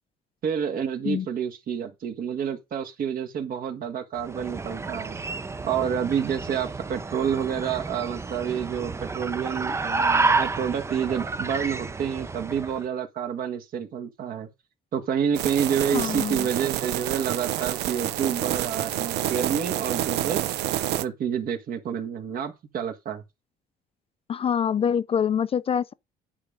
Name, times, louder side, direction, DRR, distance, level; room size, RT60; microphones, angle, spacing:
voice 1, 0.4-5.2 5.6-14.5 14.9-20.4 20.9-23.2, right 8 dB, 55° right, 1.7 m, -29 dB
sound 1, 4.2-12.8, right 3 dB, 15° right, 0.5 m, -30 dB
sound 2, 15.3-21.0, right 13 dB, 80° right, 0.7 m, -28 dB
voice 2, 15.9-16.5 24.3-25.9, left 8 dB, 35° left, 0.5 m, -25 dB
9.6 x 3.6 x 5.2 m
cardioid pair, 110°, 17 cm